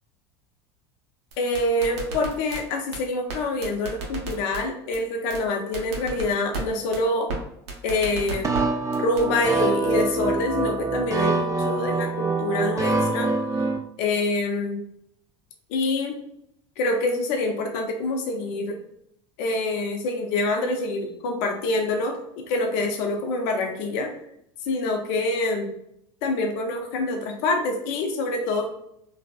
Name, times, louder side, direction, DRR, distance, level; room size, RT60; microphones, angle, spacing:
sound 1, 1.3-2.6 2.9-3.0 3.3-3.4 3.6-4.6 4.9-5.0 5.3-5.4 5.7-6.6 6.9-7.0 7.3-7.4 7.7-8.6 8.9-9.2, right 3 dB, 80° right, 0.6 m, -32 dB
voice 1, 1.4-7.3 7.8-8.5 9.0-13.3 14.0-14.8 15.7-16.2 16.8-18.8 19.4-24.1 24.7-25.7 26.2-28.7, left 2 dB, 70° left, 3 dB, 0.5 m, -26 dB
sound 2, 8.4-13.8, right 3 dB, 20° right, 0.3 m, -25 dB
2.6 x 2.3 x 2.3 m, 0.74 s
hypercardioid pair, 85°, 14 cm